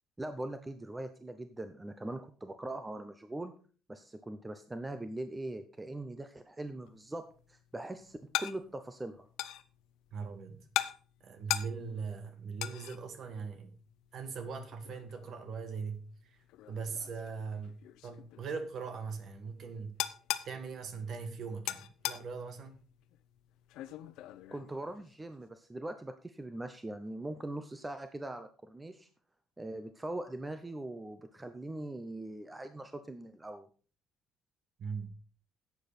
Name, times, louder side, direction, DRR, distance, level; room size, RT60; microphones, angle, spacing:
voice 1, 0.2-3.5 3.9-9.3 24.5-29.1 29.6-33.7, right 1 dB, 10° right, 0.7 m, -41 dB
sound 1, 6.8-25.4, left 14 dB, 80° left, 0.7 m, -42 dB
voice 2, 10.1-10.7 11.2-13.8 14.1-17.7 18.0-20.0 20.4-22.7 34.8-35.2, right 5 dB, 45° right, 1.7 m, -40 dB
12.0 x 8.4 x 4.2 m
cardioid pair, 160°, 0 cm